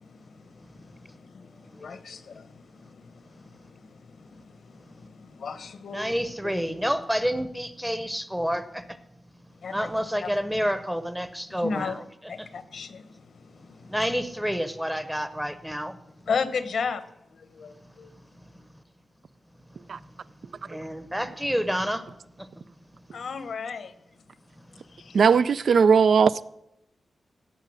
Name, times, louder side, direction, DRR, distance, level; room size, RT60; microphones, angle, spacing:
voice 1, 0.0-6.1 6.4-6.5 9.6-9.9 10.2-10.3 11.6-12.0 12.3-13.9 16.3-17.0 17.3-18.1 23.1-23.9 24.9-25.4, left 5 dB, 75° left, 0.9 m, -35 dB
voice 2, 5.9-8.8 9.7-12.5 13.9-16.0 20.7-22.0 22.4-22.5, equal, 5° right, 0.8 m, -29 dB
voice 3, 25.1-26.4, right 6 dB, 70° right, 0.3 m, -18 dB
17.0 x 6.7 x 6.2 m
wide cardioid pair, 115°, 0 cm